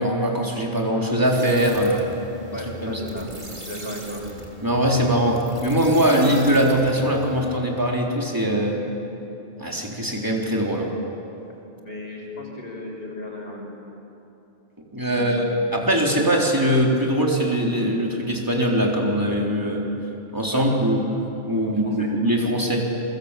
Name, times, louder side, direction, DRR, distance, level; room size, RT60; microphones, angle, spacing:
voice 1, 0.0-2.1 2.8-2.9 4.6-8.8 9.6-10.9 14.9-15.4 15.7-19.8 20.3-21.0 21.4-22.9, equal, 20° right, -1 dB, 3.9 m, -21 dB
sound 1, 1.3-7.6, equal, 50° right, 3.8 m, -40 dB
voice 2, 2.5-3.3 3.7-4.2 11.8-13.7 15.1-15.6 20.5-20.7 21.7-22.1, left 1 dB, 70° left, -1 dB, 6.1 m, -35 dB
29.0 x 23.5 x 8.4 m, 2.9 s
omnidirectional pair, 1.0 m